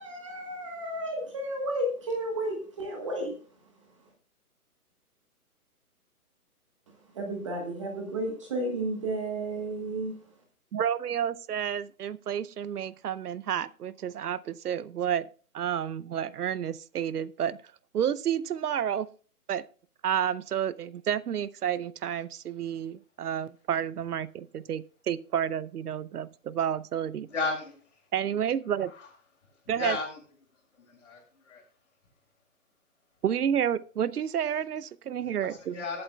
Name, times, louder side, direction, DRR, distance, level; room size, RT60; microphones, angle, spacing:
voice 1, 0.0-3.3 7.1-10.2, right 1 dB, 20° right, 1 dB, 1.2 m, -32 dB
voice 2, 10.7-15.3 15.5-17.6 17.9-19.1 19.5-19.6 20.0-27.3 28.1-28.9 29.7-30.0 33.2-35.8, right 9 dB, 75° right, 19 dB, 0.7 m, -30 dB
voice 3, 27.3-27.8 29.8-30.2 30.8-31.6 35.4-36.0, left 4 dB, 50° left, -2 dB, 6.5 m, -34 dB
19.0 x 8.6 x 2.3 m, 0.40 s
hypercardioid pair, 170°, 46 cm